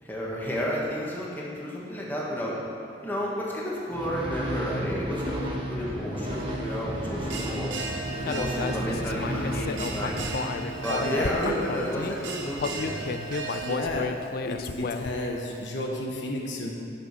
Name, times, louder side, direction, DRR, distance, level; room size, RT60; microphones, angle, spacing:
voice 1, 0.0-2.6 3.0-7.7 8.3-10.2 10.8-13.0, equal, 10° left, -5 dB, 1.7 m, -32 dB
sound 1, 3.9-11.3, equal, 30° right, 1.4 m, -33 dB
Bell, 6.3-13.8, right 4 dB, 85° right, 1.0 m, -37 dB
Human voice, 8.3-12.1 12.6-15.3, left 4 dB, 55° left, 0.4 m, -33 dB
voice 2, 10.9-11.7 13.6-14.1 14.4-16.7, left 1 dB, 75° left, -1 dB, 1.2 m, -31 dB
10.5 x 6.3 x 6.1 m, 2.6 s
head